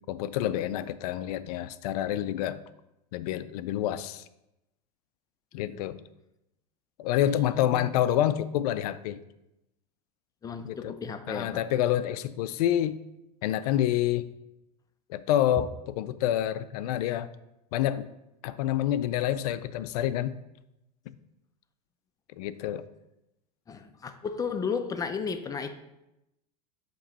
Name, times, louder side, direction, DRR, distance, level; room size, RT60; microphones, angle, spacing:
voice 1, 0.1-2.6 3.1-4.2 5.5-6.0 7.0-9.2 10.6-10.9 11.3-13.0 13.4-14.3 15.1-17.3 17.7-18.1 18.4-20.4 21.1-21.2 22.3-22.8, left 12 dB, 70° left, 14 dB, 0.4 m, -28 dB
voice 2, 7.2-8.0 10.4-11.6 15.6-15.7 23.7-25.7, left 5 dB, 15° left, 8 dB, 0.5 m, -34 dB
7.3 x 3.0 x 4.2 m, 0.90 s
hypercardioid pair, 105°, 20 cm